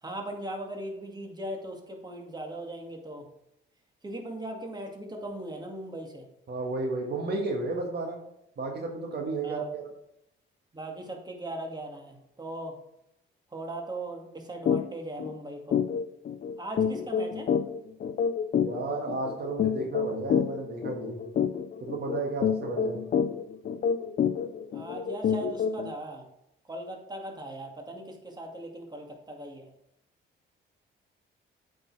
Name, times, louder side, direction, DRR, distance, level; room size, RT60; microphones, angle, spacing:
voice 1, 0.0-3.3 4.0-6.3 9.4-9.7 10.7-12.8 13.5-15.8 16.6-17.5 24.7-26.2 26.7-29.7, right 1 dB, 20° right, 2 dB, 2.1 m, -39 dB
voice 2, 6.5-8.2 8.6-9.9 18.6-21.2 21.8-23.0, right 3 dB, 55° right, 2 dB, 1.7 m, -33 dB
sound 1, 14.7-14.8 15.2-15.3 15.7-25.9, left 7 dB, 45° left, 0.6 m, -28 dB
8.7 x 5.4 x 4.7 m, 0.80 s
cardioid pair, 90°, 20 cm